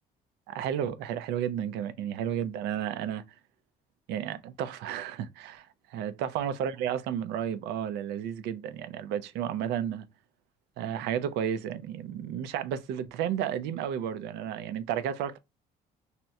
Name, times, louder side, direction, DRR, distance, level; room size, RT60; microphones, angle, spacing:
voice 1, 0.5-3.2 4.1-10.1 10.8-15.4, right 9 dB, 90° right, 0.4 m, -32 dB
2.8 x 2.1 x 3.4 m
cardioid pair, 110°, 17 cm